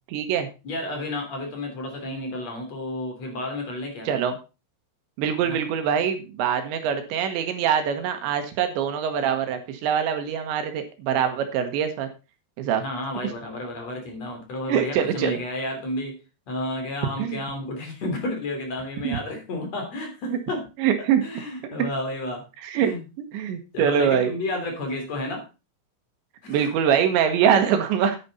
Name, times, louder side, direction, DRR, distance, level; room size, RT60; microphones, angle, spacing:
voice 1, 0.1-0.5 4.1-4.4 5.2-12.1 12.6-12.8 14.7-15.4 17.2-17.4 19.0-19.2 20.8-21.2 21.8-21.9 22.6-22.9 23.3-24.3 26.5-28.2, right 8 dB, 75° right, 7 dB, 3.5 m, -23 dB
voice 2, 0.6-4.1 5.4-5.6 12.8-16.2 16.5-20.7 21.2-22.4 22.8-23.0 23.7-25.4 26.4-26.7, left 1 dB, 40° left, 4 dB, 3.8 m, -31 dB
10.5 x 9.3 x 4.2 m, 0.29 s
omnidirectional pair, 5.5 m